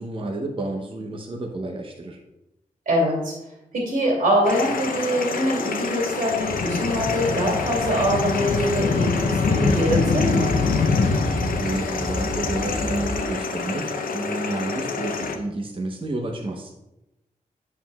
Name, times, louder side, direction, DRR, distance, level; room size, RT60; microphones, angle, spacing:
voice 1, 0.0-2.2 11.2-16.7, right 2 dB, 40° right, 1 dB, 0.8 m, -30 dB
voice 2, 2.9-3.3 3.7-10.6, equal, 85° right, -3 dB, 2.6 m, -23 dB
sound 1, 4.4-15.4, left 4 dB, 85° left, 0.7 m, -25 dB
sound 2, 7.6-13.2, left 2 dB, 50° left, 1.3 m, -33 dB
8.3 x 7.3 x 2.3 m, 0.93 s
wide cardioid pair, 105°, 14 cm